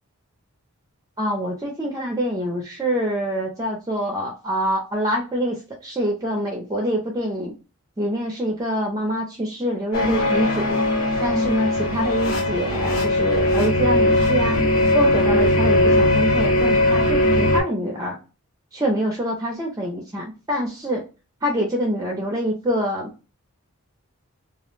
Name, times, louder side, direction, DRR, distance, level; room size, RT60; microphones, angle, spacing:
voice 1, 1.2-7.5 8.0-10.8 11.2-14.6 14.9-18.2 18.7-21.0 21.4-23.1, equal, 15° right, 0 dB, 0.4 m, -25 dB
sound 1, 9.9-17.6, left 1 dB, 60° left, 0.7 m, -19 dB
2.3 x 2.0 x 3.0 m, 0.31 s
head